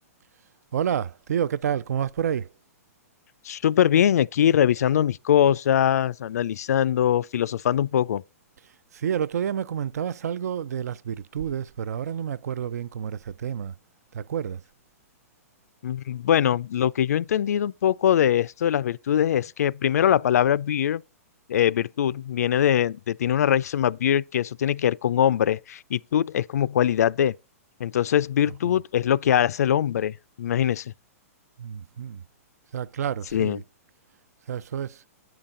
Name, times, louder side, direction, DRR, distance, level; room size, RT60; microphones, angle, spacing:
voice 1, 0.7-2.5 8.9-13.8 14.1-14.6 28.6-28.8 31.6-32.2 32.7-33.6 34.5-35.0, right 8 dB, 85° right, 0.5 m, -29 dB
voice 2, 3.4-8.2 15.8-21.0 21.5-27.3 27.8-30.9 33.3-33.6, left 10 dB, 85° left, 0.4 m, -22 dB
9.0 x 5.8 x 3.7 m
hypercardioid pair, 160°, 8 cm